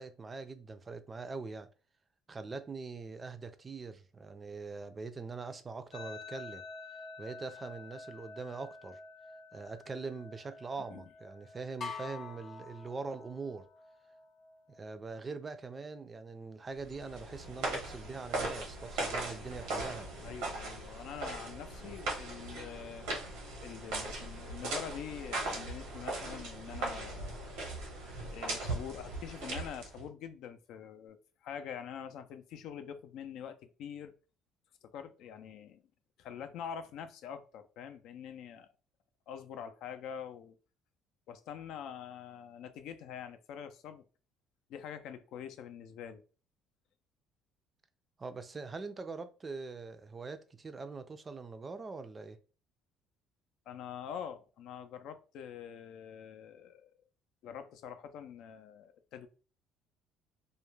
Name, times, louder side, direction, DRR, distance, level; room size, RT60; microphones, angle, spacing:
voice 1, 0.0-1.7 2.3-6.6 7.2-9.0 9.5-13.7 14.7-20.1 21.8-21.9 48.2-52.4, right 4 dB, 25° right, 0.3 m, -43 dB
sound 1, 5.9-15.0, left 3 dB, 90° left, 0.8 m, -51 dB
sound 2, 11.8-13.6, left 5 dB, 40° left, 0.7 m, -44 dB
sound 3, 16.8-30.1, right 2 dB, 90° right, 0.9 m, -39 dB
voice 2, 20.2-23.1 23.6-27.7 28.3-34.1 34.8-35.8 36.2-38.7 39.3-40.6 41.3-44.0 44.7-46.2 53.7-56.9 57.4-59.3, left 8 dB, 70° left, 0.4 m, -45 dB
2.3 x 2.1 x 3.1 m
cardioid pair, 105°, 0 cm